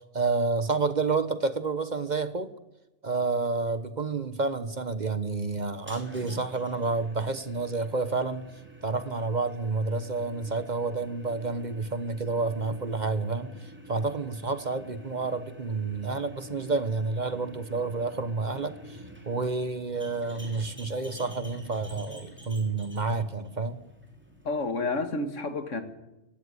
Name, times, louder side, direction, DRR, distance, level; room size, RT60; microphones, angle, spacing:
voice 1, 0.0-2.5 3.0-8.5 8.8-23.8, right 3 dB, 40° right, 1.1 m, -29 dB
sound 1, 5.7-25.1, right 1 dB, 10° right, 3.3 m, -49 dB
voice 2, 24.4-25.8, left 3 dB, 80° left, 2.2 m, -30 dB
17.0 x 16.0 x 9.8 m
omnidirectional pair, 1.3 m